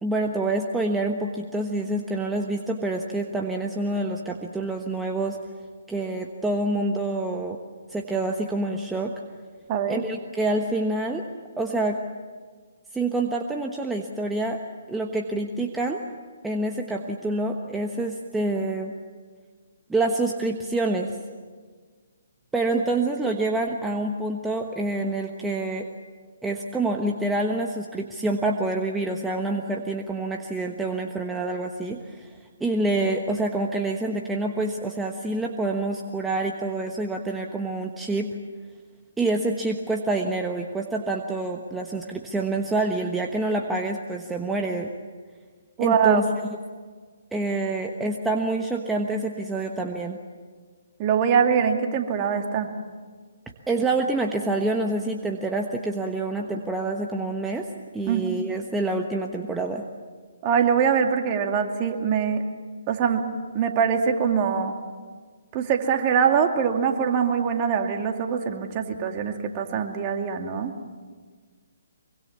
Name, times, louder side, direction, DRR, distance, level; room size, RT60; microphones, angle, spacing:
voice 1, 0.0-5.4 5.9-7.6 7.9-9.1 9.9-11.2 11.6-12.0 12.9-14.6 14.9-16.0 16.4-18.9 19.9-21.2 22.5-25.9 26.4-38.3 39.2-44.9 45.8-46.6 47.3-50.2 53.7-57.7 57.9-59.9, right 2 dB, 5° right, 2 dB, 1.2 m, -27 dB
voice 2, 9.7-10.0 45.8-46.3 51.0-52.7 58.0-58.2 60.4-62.4 62.9-63.3 63.5-64.7 65.5-70.7, right 7 dB, 30° right, 4 dB, 2.4 m, -23 dB
24.5 x 24.0 x 7.3 m, 1.6 s
figure-of-eight pair, 145°, 0 cm